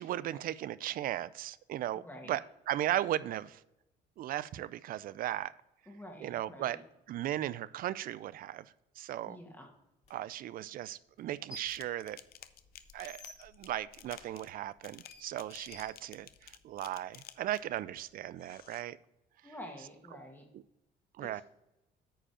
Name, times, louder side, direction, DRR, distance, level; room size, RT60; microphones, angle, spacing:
voice 1, 0.0-2.4 2.7-3.6 4.2-5.5 6.2-6.8 7.1-9.4 10.1-12.2 12.9-19.0 21.2-21.4, right 13 dB, 60° right, 18 dB, 0.4 m, -37 dB
voice 2, 1.9-2.4 5.9-6.8 9.3-9.7 19.4-20.4 21.2-21.4, equal, 10° left, 2 dB, 1.8 m, -48 dB
sound 1, 10.0-10.1 11.2-11.9 12.2-16.6, left 1 dB, 45° left, 2.2 m, -53 dB
sound 2, 11.7-17.8 18.4-18.8, left 12 dB, 65° left, 0.6 m, -53 dB
9.0 x 5.0 x 5.0 m, 0.90 s
cardioid pair, 110°, 17 cm